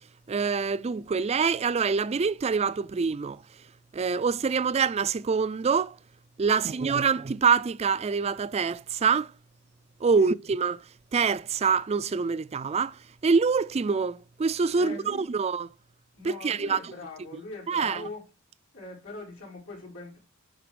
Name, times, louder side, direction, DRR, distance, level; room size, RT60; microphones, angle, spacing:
voice 1, 0.3-3.4 3.9-5.9 6.4-9.3 10.0-10.8 11.1-12.9 13.2-15.7 16.4-16.8 17.7-18.0, right 5 dB, 30° right, 0.4 m, -25 dB
voice 2, 6.5-7.1 10.2-10.3 14.8-15.3 16.1-18.3 18.7-20.2, left 2 dB, 85° left, 5.6 m, -42 dB
11.0 x 4.0 x 5.0 m
head